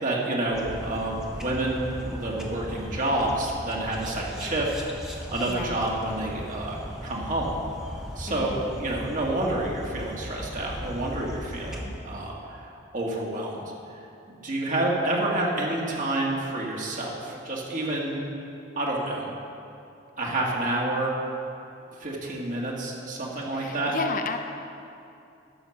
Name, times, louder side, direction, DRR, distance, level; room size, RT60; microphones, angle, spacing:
voice 1, 0.0-4.7 5.3-7.6 8.2-13.6 14.3-18.2 18.8-19.3 20.2-21.1 21.9-23.9, right 1 dB, 45° right, -3 dB, 1.9 m, -29 dB
sound 1, 0.5-11.8, equal, 5° right, 1.1 m, -38 dB
voice 2, 5.5-5.8 8.3-8.6 23.5-24.4, left 3 dB, 45° left, 5 dB, 0.6 m, -32 dB
11.5 x 7.2 x 6.0 m, 2.6 s
head